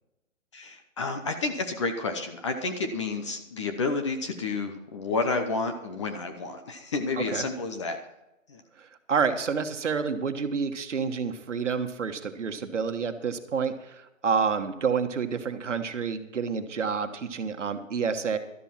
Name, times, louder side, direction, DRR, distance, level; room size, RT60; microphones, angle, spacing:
voice 1, 0.5-8.0 8.5-8.6, left 3 dB, 25° left, 6 dB, 0.8 m, -30 dB
voice 2, 8.8-18.4, right 6 dB, 65° right, 8 dB, 1.5 m, -29 dB
12.5 x 11.5 x 4.5 m, 0.92 s
hypercardioid pair, 150°, 39 cm